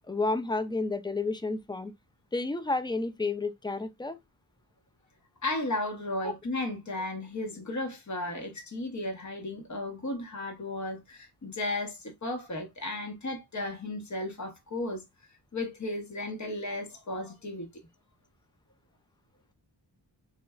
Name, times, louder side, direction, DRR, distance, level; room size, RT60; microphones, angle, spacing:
voice 1, 0.1-1.9 2.3-4.2 6.2-6.3, left 3 dB, 10° left, 0.4 m, -31 dB
voice 2, 5.4-15.0 15.5-17.7, left 2 dB, 40° left, 1.0 m, -34 dB
3.1 x 2.4 x 2.2 m
wide cardioid pair, 65°, 45 cm